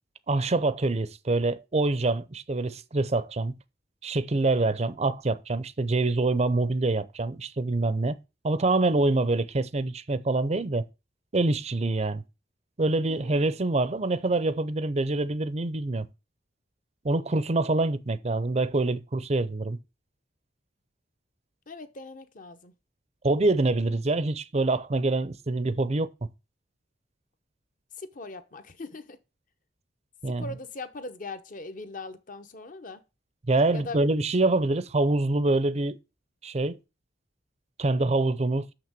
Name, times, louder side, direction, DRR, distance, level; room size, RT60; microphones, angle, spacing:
voice 1, 0.3-3.5 4.0-8.2 8.4-10.9 11.3-12.2 12.8-16.1 17.0-19.8 23.2-26.1 30.2-30.5 33.5-36.0 36.4-36.8 37.8-38.7, right 2 dB, 35° right, 0.6 m, -25 dB
voice 2, 13.1-13.4 21.7-22.7 28.0-29.2 30.4-33.0 33.7-34.0, left 3 dB, 45° left, 1.0 m, -40 dB
6.4 x 6.0 x 7.4 m
head